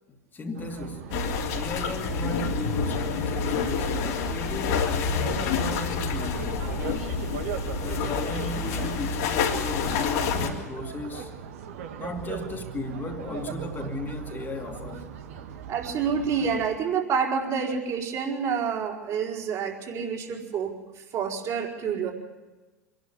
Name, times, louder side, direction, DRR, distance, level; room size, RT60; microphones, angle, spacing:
voice 1, 0.3-1.2 1.5-6.6 7.8-11.3 12.0-15.1, left 3 dB, 25° left, 2.6 m, -36 dB
sound 1, 0.5-16.7, right 7 dB, 60° right, 2.0 m, -39 dB
sound 2, 1.1-10.5, left 5 dB, 55° left, 3.4 m, -28 dB
voice 2, 15.7-20.7 21.1-22.1, right 6 dB, 40° right, 4.3 m, -28 dB
25.0 x 12.0 x 9.7 m
figure-of-eight pair, 80°, 8 cm